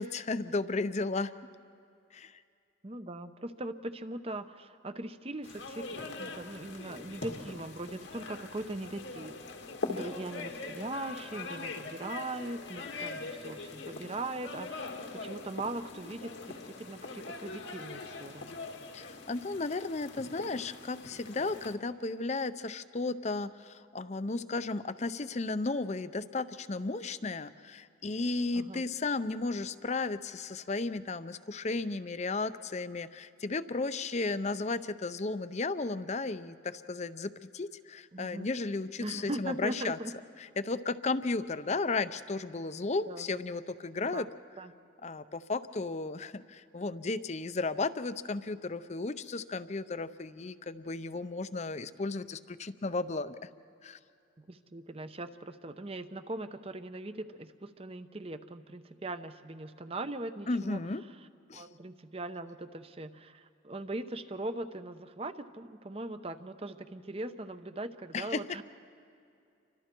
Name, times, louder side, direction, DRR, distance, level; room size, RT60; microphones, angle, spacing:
voice 1, 0.0-1.3 2.1-2.4 10.0-10.1 18.9-40.0 40.6-44.3 45.0-53.5 53.8-54.0 60.5-61.0 61.5-61.7 68.1-68.6, left 3 dB, 35° left, 13 dB, 0.6 m, -34 dB
voice 2, 2.8-9.3 9.9-18.6 28.5-28.8 38.1-38.5 39.0-40.1 43.1-43.4 44.1-44.2 44.6-44.7 54.4-60.8 61.5-68.6, right 2 dB, 30° right, 10 dB, 0.8 m, -40 dB
sound 1, 5.4-21.8, left 3 dB, 85° left, 1.9 m, -42 dB
29.0 x 24.5 x 4.5 m, 2.5 s
head